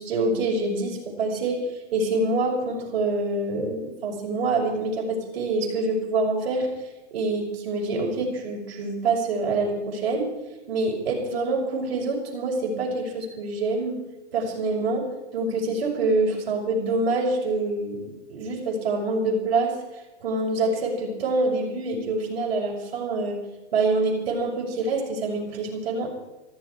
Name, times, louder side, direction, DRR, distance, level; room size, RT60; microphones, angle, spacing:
voice 1, 0.0-1.6 1.9-6.7 7.1-10.3 10.7-14.0 14.3-15.0 15.3-19.7 20.2-23.4 23.7-26.1, right 3 dB, 55° right, 0 dB, 6.5 m, -26 dB
19.5 x 15.5 x 4.8 m, 1.0 s
hypercardioid pair, 135°, 35 cm